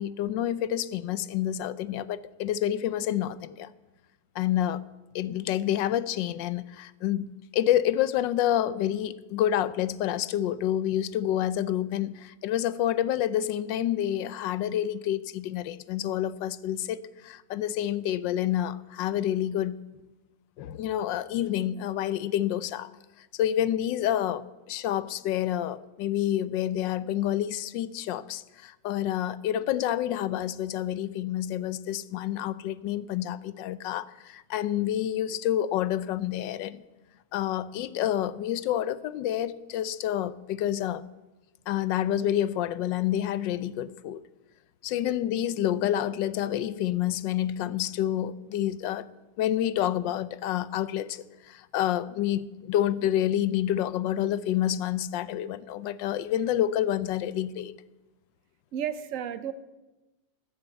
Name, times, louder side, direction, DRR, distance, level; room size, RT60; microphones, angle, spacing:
voice 1, 0.0-3.7 4.3-4.8 5.1-19.8 20.6-22.9 23.2-36.8 37.3-41.0 41.7-44.2 44.8-49.1 49.4-57.7, left 11 dB, 85° left, 1.3 m, -28 dB
voice 2, 58.7-59.5, right 9 dB, 55° right, 1.0 m, -32 dB
13.5 x 9.7 x 8.1 m
omnidirectional pair, 1.9 m